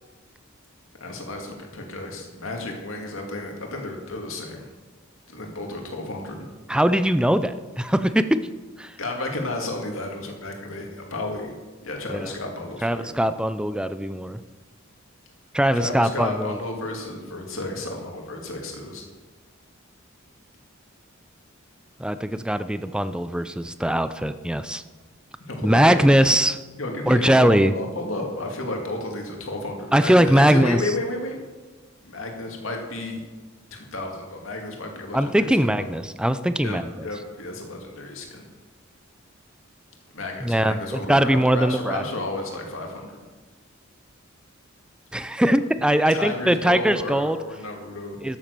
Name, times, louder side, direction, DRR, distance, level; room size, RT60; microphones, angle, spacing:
voice 1, 1.0-4.7 5.3-6.4 9.0-11.5 11.8-13.3 15.7-19.0 25.5-26.3 26.8-31.4 32.0-33.2 33.7-35.5 35.8-35.9 36.6-38.5 40.1-43.1 46.1-48.2, left 2 dB, 70° left, 1 dB, 2.4 m, -32 dB
voice 2, 6.7-8.4 8.8-8.9 12.1-12.3 12.8-14.4 15.5-16.6 22.0-24.8 25.6-26.6 27.1-27.7 29.9-30.8 35.1-37.1 40.4-42.0 45.1-47.4 48.2-48.4, right 1 dB, 5° right, 12 dB, 0.4 m, -21 dB
12.5 x 7.4 x 6.8 m, 1.3 s
head